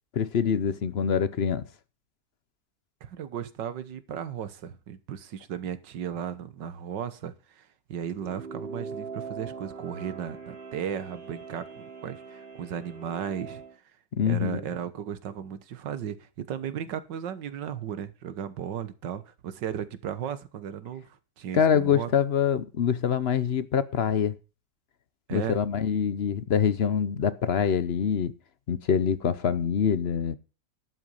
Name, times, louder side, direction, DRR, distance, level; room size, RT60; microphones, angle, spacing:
voice 1, 0.1-1.6 14.1-14.6 21.5-24.3 25.3-28.3 28.7-30.4, left 7 dB, 50° left, 0.8 m, -25 dB
voice 2, 3.0-13.6 14.2-22.1 25.3-25.6, right 9 dB, 85° right, 1.8 m, -35 dB
sound 1, 8.0-13.7, right 5 dB, 30° right, 4.6 m, -41 dB
11.5 x 7.9 x 5.5 m
omnidirectional pair, 1.9 m